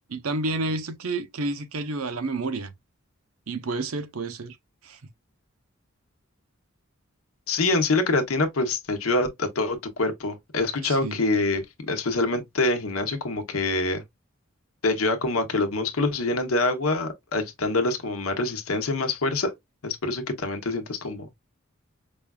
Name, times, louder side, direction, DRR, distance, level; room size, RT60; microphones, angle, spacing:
voice 1, 0.1-2.7 3.5-4.6 4.8-5.0 10.8-11.2, right 3 dB, 90° right, 0.7 m, -30 dB
voice 2, 7.5-14.0 14.8-19.5 19.8-21.3, left 2 dB, 80° left, 0.9 m, -25 dB
5.0 x 2.4 x 2.3 m
head